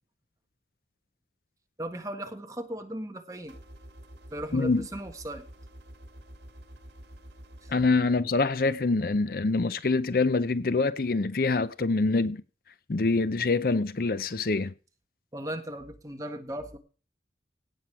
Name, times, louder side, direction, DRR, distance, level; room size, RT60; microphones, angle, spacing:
voice 1, 1.8-3.6 4.3-5.4 15.3-16.8, right 1 dB, 20° right, 1.5 m, -37 dB
sound 1, 3.5-7.9, equal, 75° right, 2.1 m, -48 dB
voice 2, 4.5-4.8 7.7-12.4 12.9-14.7, left 3 dB, 55° left, 0.6 m, -25 dB
17.0 x 7.3 x 4.8 m
head